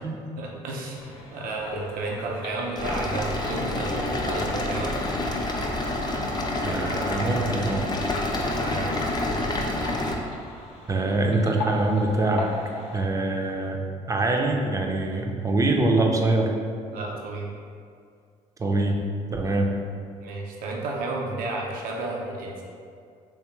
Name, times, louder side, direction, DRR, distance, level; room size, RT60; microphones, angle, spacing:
voice 1, 0.4-5.0 8.6-9.0 16.9-17.5 20.2-22.6, right 2 dB, 70° right, -2 dB, 0.6 m, -32 dB
sound 1, 0.9-13.1, left 2 dB, 80° left, 0.5 m, -40 dB
sound 2, 2.8-10.2, left 1 dB, 25° left, 0.6 m, -28 dB
voice 2, 6.6-7.9 10.9-12.5 12.9-13.8 14.1-16.5 18.6-19.0 19.3-19.7, right 2 dB, 20° right, 2 dB, 0.5 m, -24 dB
3.4 x 3.1 x 3.0 m, 2.3 s
supercardioid pair, 70°, 15 cm